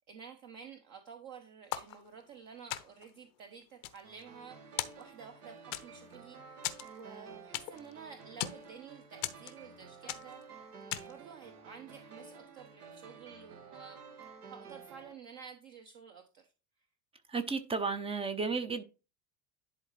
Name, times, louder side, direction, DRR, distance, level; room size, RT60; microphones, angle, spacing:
voice 1, 0.1-10.4 11.0-14.2 14.5-16.4, right 6 dB, 45° right, 1.0 m, -51 dB
sound 1, 1.7-2.4 2.7-3.2 3.6-4.5 4.8-5.3 5.7-6.2 6.6-7.9 8.2-8.7 9.2-9.8 10.1-10.4 10.9-11.3, left 15 dB, 50° left, 0.7 m, -39 dB
sound 2, 4.0-15.1, right 5 dB, 70° right, 1.2 m, -52 dB
voice 2, 17.3-18.8, right 4 dB, 10° right, 0.5 m, -33 dB
10.5 x 4.0 x 3.1 m
figure-of-eight pair, 70°, 48 cm